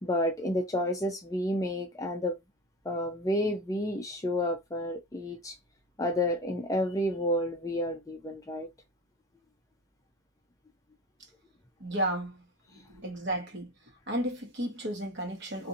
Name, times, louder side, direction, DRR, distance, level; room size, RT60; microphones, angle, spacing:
voice 1, 0.0-2.4 2.9-5.5 6.0-8.7, left 1 dB, 15° left, 0.4 m, -30 dB
voice 2, 11.8-12.4 12.9-13.7 14.1-15.7, right 1 dB, 50° right, 1.1 m, -33 dB
2.6 x 2.5 x 2.6 m
head